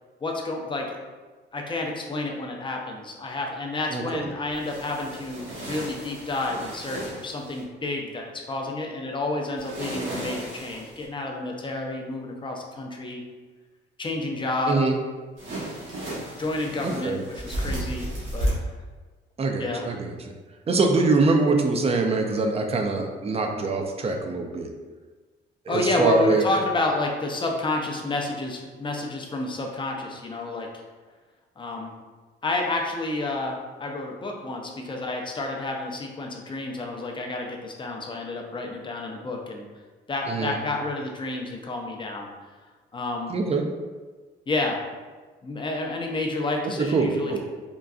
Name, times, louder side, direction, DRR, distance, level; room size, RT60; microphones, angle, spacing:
voice 1, 0.2-1.0 1.5-13.2 14.0-14.9 16.4-18.5 19.6-19.9 25.7-30.7 31.6-31.9 32.4-39.7 40.1-42.3 42.9-43.3 44.5-44.8 45.4-47.4, left 2 dB, 25° left, 1 dB, 0.5 m, -30 dB
voice 2, 3.9-4.2 14.7-14.9 16.8-17.2 19.4-20.1 20.7-24.7 25.7-26.4 40.3-40.5 43.3-43.6 46.8-47.4, right 3 dB, 30° right, 3 dB, 0.4 m, -24 dB
sound 1, 4.5-7.6 9.6-11.1 15.4-18.5, right 1 dB, 80° right, 1.1 m, -34 dB
3.7 x 2.2 x 2.4 m, 1.4 s
cardioid pair, 90°, 20 cm